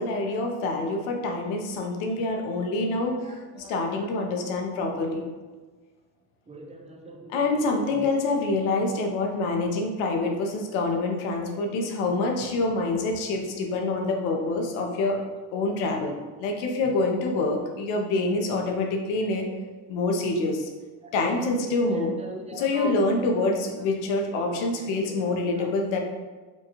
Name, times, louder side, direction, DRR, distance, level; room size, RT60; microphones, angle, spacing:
voice 1, 0.0-3.3 3.7-5.2 7.3-15.2 15.5-19.5 19.9-20.7 21.1-22.2 22.5-26.0, left 2 dB, 70° left, 2 dB, 0.9 m, -26 dB
voice 2, 3.2-4.1 6.5-7.3 7.8-8.1 19.5-19.6 21.6-23.1 24.3-25.2 25.6-25.7, right 2 dB, 15° right, 2 dB, 0.3 m, -42 dB
5.6 x 2.3 x 3.0 m, 1.3 s
supercardioid pair, 90°, 48 cm